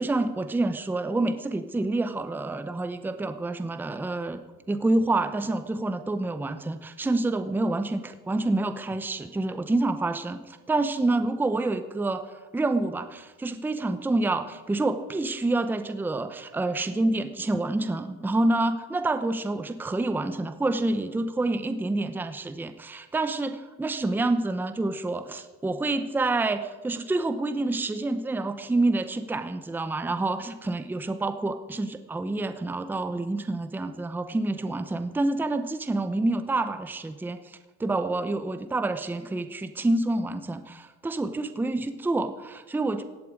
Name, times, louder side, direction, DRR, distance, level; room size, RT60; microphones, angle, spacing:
voice 1, 0.0-4.4 4.7-12.2 12.5-43.0, right 2 dB, 5° right, 10 dB, 0.7 m, -28 dB
16.5 x 8.4 x 9.7 m, 1.2 s
cardioid pair, 160°, 36 cm